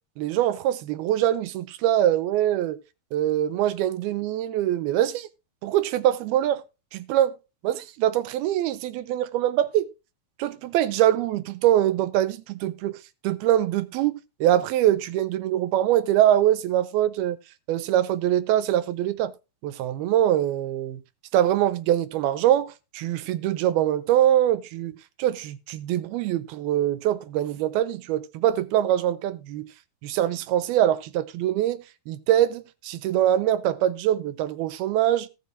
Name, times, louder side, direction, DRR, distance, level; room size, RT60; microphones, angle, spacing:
voice 1, 0.2-2.8 3.1-5.3 5.6-6.6 6.9-7.4 7.6-9.9 10.4-13.0 13.2-17.4 17.7-19.3 19.6-21.0 21.3-24.9 25.2-29.7 30.0-31.8 32.1-35.3, right 12 dB, 80° right, 2.7 m, -23 dB
17.5 x 6.5 x 2.6 m
omnidirectional pair, 4.5 m